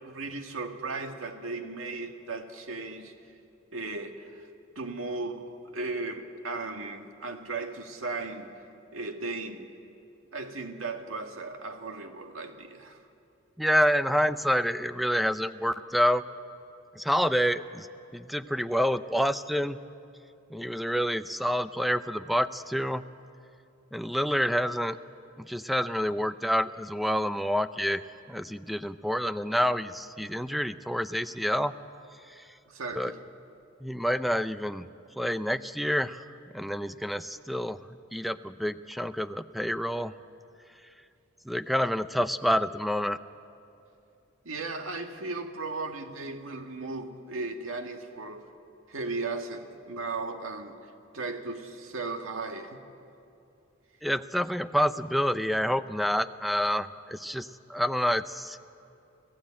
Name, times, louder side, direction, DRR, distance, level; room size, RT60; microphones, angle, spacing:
voice 1, 0.0-3.1 3.7-4.5 4.8-8.5 8.9-9.7 10.3-13.0 32.7-33.2 44.5-48.5 48.9-50.8 51.1-52.8, right 3 dB, 90° right, 5 dB, 1.8 m, -36 dB
voice 2, 13.6-16.2 17.0-17.9 18.1-19.8 20.5-23.0 23.9-25.0 25.4-28.0 28.3-31.8 32.4-32.5 33.0-33.1 33.8-34.9 35.2-36.2 36.5-37.8 38.1-40.1 41.5-43.2 54.0-58.6, equal, ahead, 12 dB, 0.5 m, -28 dB
28.0 x 15.5 x 8.7 m, 2.7 s
head